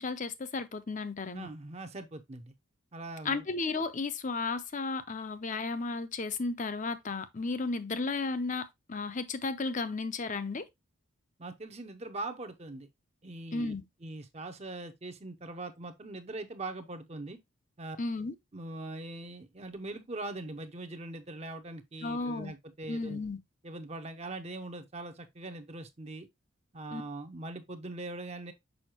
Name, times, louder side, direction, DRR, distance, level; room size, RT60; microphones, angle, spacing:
voice 1, 0.0-1.5 3.2-10.7 13.5-13.8 18.0-18.3 22.0-22.5 22.9-23.4 26.9-27.0, left 3 dB, 35° left, 0.6 m, -34 dB
voice 2, 1.3-2.5 2.9-3.4 11.4-12.9 13.2-13.7 14.0-17.4 17.8-18.0 18.5-23.2 23.6-26.3 26.7-28.5, right 2 dB, 30° right, 0.7 m, -41 dB
6.4 x 5.4 x 2.9 m
head